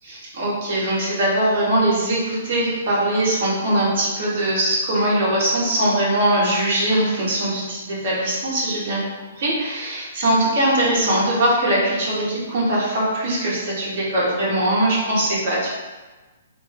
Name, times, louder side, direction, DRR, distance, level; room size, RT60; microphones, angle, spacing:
voice 1, 0.0-9.0 9.4-15.7, right 1 dB, 50° right, -5 dB, 1.2 m, -21 dB
3.0 x 2.7 x 3.2 m, 1.2 s
figure-of-eight pair, 120°, 0 cm